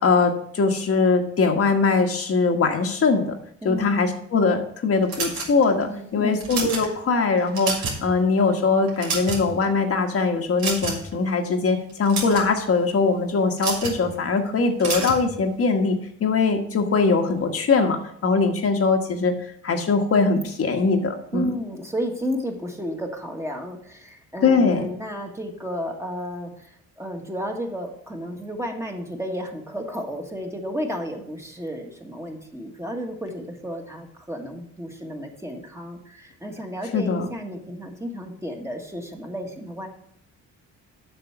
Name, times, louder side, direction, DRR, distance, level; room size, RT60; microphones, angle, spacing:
voice 1, 0.0-3.4 3.6-7.7 8.0-19.3 19.6-21.5 24.4-24.9 36.9-37.3, left 4 dB, 50° left, 3 dB, 1.4 m, -21 dB
voice 2, 3.6-4.2 5.8-6.4 21.3-39.9, equal, 10° right, 2 dB, 1.6 m, -32 dB
sound 1, 5.1-5.8 6.3-6.9 7.4-8.1 8.4-8.5 8.9-9.6 10.6-11.1 11.9-12.5 13.6-14.0 14.8-15.2, right 4 dB, 80° right, 2.9 m, -28 dB
7.9 x 6.1 x 5.9 m, 0.68 s
cardioid pair, 90°, 30 cm